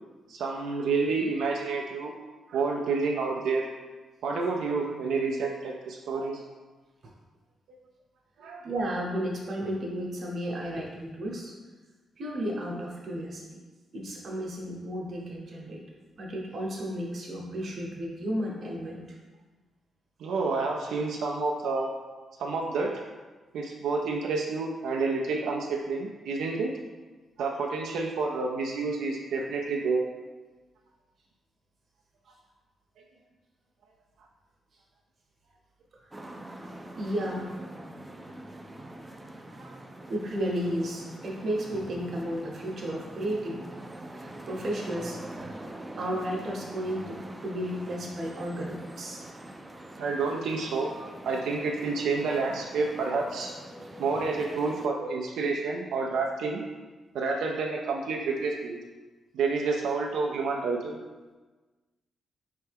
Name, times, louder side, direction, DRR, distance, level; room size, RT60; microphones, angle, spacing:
voice 1, 0.3-2.1 2.5-3.7 4.2-6.4 7.7-7.8 8.4-8.7 20.2-21.9 22.4-23.0 23.5-26.7 27.4-30.0 39.5-39.8 50.0-50.9 51.2-53.5 54.0-56.7 57.1-58.8 59.3-61.0, right 4 dB, 90° right, 0 dB, 0.4 m, -29 dB
voice 2, 8.6-11.5 12.2-13.5 13.9-15.8 16.1-19.0 37.0-37.5 40.1-43.7 44.1-45.6 46.0-49.2, equal, 45° right, -2 dB, 0.9 m, -33 dB
sound 1, 36.1-54.9, right 1 dB, 10° right, 0.3 m, -44 dB
4.4 x 3.3 x 3.3 m, 1.3 s
cardioid pair, 130°, 0 cm